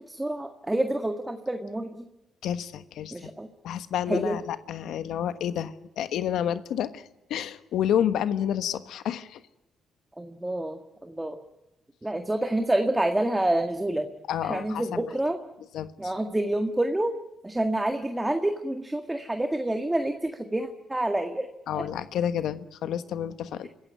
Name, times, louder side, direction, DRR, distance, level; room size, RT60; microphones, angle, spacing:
voice 1, 0.1-2.1 3.1-3.5 4.1-4.3 10.2-11.4 12.0-14.1 14.4-15.4 16.0-17.1 17.4-21.5 21.7-21.8, right 1 dB, 10° right, 6 dB, 1.9 m, -28 dB
voice 2, 2.4-3.3 3.6-9.4 14.3-15.1 15.7-16.1 21.7-23.7, left 10 dB, 80° left, 11 dB, 1.3 m, -30 dB
26.0 x 15.0 x 9.5 m, 0.97 s
cardioid pair, 90°, 0 cm